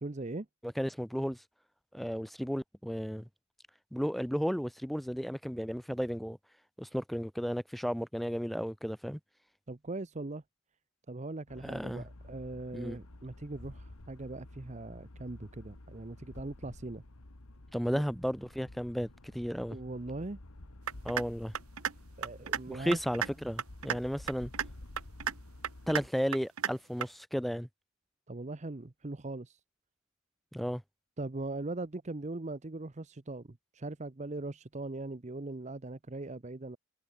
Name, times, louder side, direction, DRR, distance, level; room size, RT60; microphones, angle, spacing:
voice 1, 0.0-0.5 9.7-10.4 11.1-17.0 19.7-20.4 22.2-23.0 28.3-29.6 31.2-36.8, right 2 dB, 35° right, 0.7 m, -40 dB
voice 2, 0.6-1.4 1.9-3.3 3.9-6.4 6.8-9.2 11.6-12.1 12.7-13.0 17.7-19.8 21.0-21.5 22.7-24.5 25.9-27.7 30.5-30.8, equal, ahead, 1.7 m, -34 dB
sound 1, 11.5-26.1, left 1 dB, 85° left, 1.9 m, -51 dB
sound 2, 20.9-21.3 21.5-21.9 22.2-22.6 22.9-23.3 23.6-24.0 24.3-24.7 25.0-25.3 25.6-26.0 26.3-26.7 27.0-27.1, right 8 dB, 85° right, 1.0 m, -32 dB
head